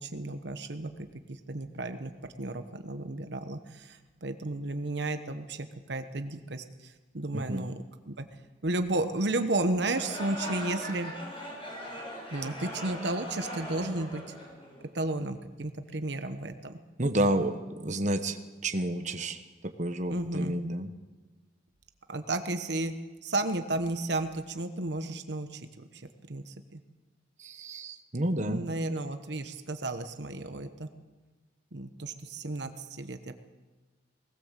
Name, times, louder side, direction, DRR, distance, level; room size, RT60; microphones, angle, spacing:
voice 1, 0.0-2.1 2.4-7.7 8.1-8.3 8.6-11.1 12.3-14.4 14.9-16.8 20.1-20.5 22.1-22.9 23.2-26.8 28.4-30.9 31.7-33.4, right 2 dB, 60° right, 8 dB, 1.1 m, -33 dB
voice 2, 7.3-7.7 17.0-18.4 18.6-20.9 27.4-28.6, right 1 dB, 40° right, 6 dB, 1.2 m, -30 dB
sound 1, 9.8-15.0, equal, 30° left, 6.8 m, -40 dB
19.5 x 19.0 x 7.5 m, 1.3 s
head